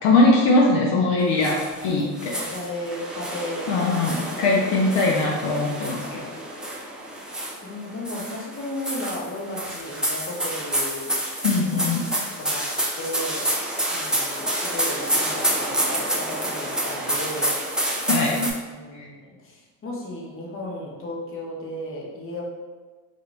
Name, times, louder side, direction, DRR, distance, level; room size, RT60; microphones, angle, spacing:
voice 1, 0.0-2.1 2.3-2.4 3.7-6.2 11.4-12.1 18.0-18.5 18.9-19.0, left 2 dB, 55° left, -3 dB, 0.7 m, -21 dB
sound 1, 1.4-1.9 2.2-7.7 8.1-18.5, right 1 dB, ahead, 0.4 m, -28 dB
voice 2, 1.8-3.9 4.7-4.8 6.0-6.3 7.6-11.2 11.7-11.8 12.4-12.6 13.0-13.5 13.9-17.6 18.7-22.4, left 1 dB, 25° left, -3 dB, 0.9 m, -34 dB
2.8 x 2.6 x 3.3 m, 1.3 s
supercardioid pair, 100°, 49 cm